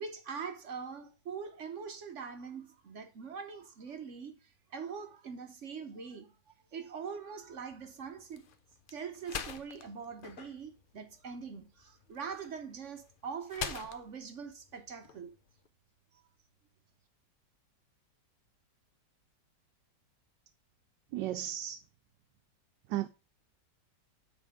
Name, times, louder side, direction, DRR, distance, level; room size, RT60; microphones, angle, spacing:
voice 1, 0.0-6.4 6.7-8.5 8.9-15.3, right 6 dB, 55° right, 0.9 m, -43 dB
sound 1, 7.4-15.7, left 6 dB, 65° left, 0.5 m, -46 dB
voice 2, 21.1-21.8 22.9-23.1, right 13 dB, 90° right, 1.2 m, -34 dB
7.8 x 4.1 x 4.7 m
omnidirectional pair, 1.9 m